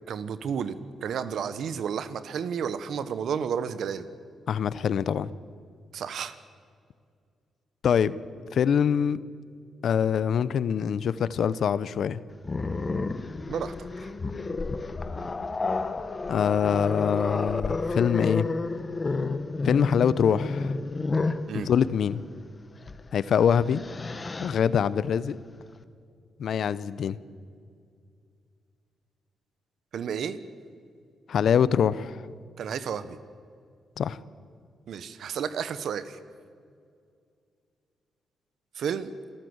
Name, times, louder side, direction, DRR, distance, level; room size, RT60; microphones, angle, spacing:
voice 1, 0.1-0.8 1.0-4.1 5.9-6.4 13.5-14.1 21.5-21.7 29.9-30.4 32.6-33.2 34.9-36.2 38.7-39.1, right 7 dB, 75° right, 13 dB, 1.1 m, -32 dB
voice 2, 4.5-5.3 7.8-8.2 8.5-9.2 9.8-12.2 16.3-18.5 19.6-20.7 21.5-22.2 23.1-23.8 24.4-25.4 26.4-27.2 31.3-32.2 34.0-34.2, left 8 dB, 70° left, 17 dB, 0.7 m, -24 dB
Growling, 12.4-21.5 22.8-23.0 23.4-24.6, left 3 dB, 35° left, 1.2 m, -30 dB
27.5 x 13.5 x 8.0 m, 2.3 s
cardioid pair, 75°, 0 cm